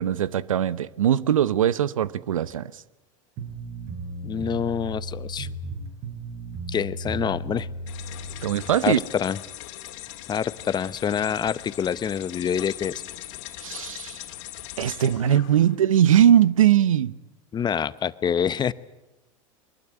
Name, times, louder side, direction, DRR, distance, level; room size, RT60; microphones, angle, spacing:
voice 1, 0.0-2.8 8.4-9.0 13.6-14.2 14.8-17.2, right 10 dB, 85° right, 0.8 m, -20 dB
sound 1, 3.4-8.7, right 2 dB, 50° right, 6.9 m, -35 dB
voice 2, 4.2-5.5 6.7-7.7 8.8-9.4 10.3-13.0 17.5-18.7, left 8 dB, 25° left, 0.9 m, -26 dB
sound 2, 7.9-15.8, left 15 dB, 65° left, 2.6 m, -40 dB
23.5 x 20.5 x 9.9 m
hypercardioid pair, 100°, 17 cm